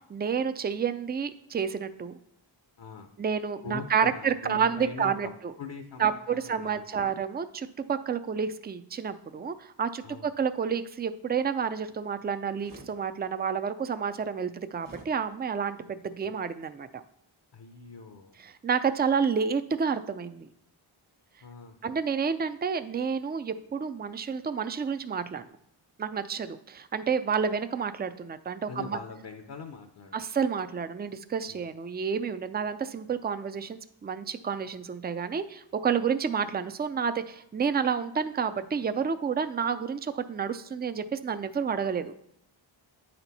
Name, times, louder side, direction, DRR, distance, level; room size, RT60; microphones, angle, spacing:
voice 1, 0.1-2.2 3.2-5.5 6.0-15.8 16.0-17.0 18.4-20.5 21.8-25.5 26.0-29.0 30.1-42.2, right 6 dB, 25° right, 11 dB, 0.3 m, -30 dB
voice 2, 2.8-3.1 3.6-5.3 5.6-7.1 10.0-10.3 17.5-18.4 21.4-22.0 28.7-30.2 31.5-31.6, left 5 dB, 55° left, 5 dB, 0.7 m, -42 dB
sound 1, 12.6-13.0 14.8-15.1, right 2 dB, 40° right, 1.0 m, -47 dB
8.7 x 4.4 x 4.1 m, 0.73 s
wide cardioid pair, 60°, 48 cm